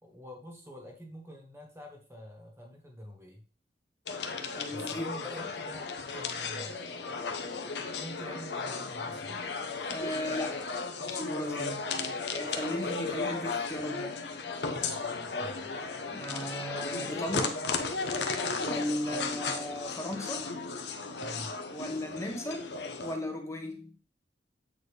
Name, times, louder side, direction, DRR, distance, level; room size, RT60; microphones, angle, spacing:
voice 1, 0.0-3.4 4.7-7.2 8.0-9.4 14.6-15.7 21.2-21.5, equal, 15° right, 2 dB, 1.3 m, -47 dB
sound 1, 4.1-23.2, left 4 dB, 75° left, 0.8 m, -35 dB
voice 2, 4.5-5.4 9.9-10.7 11.0-11.9 12.3-14.2 16.1-17.6 18.5-20.5 21.7-22.7 23.0-23.9, equal, 15° left, 3 dB, 1.0 m, -36 dB
8.2 x 4.1 x 3.2 m, 0.37 s
head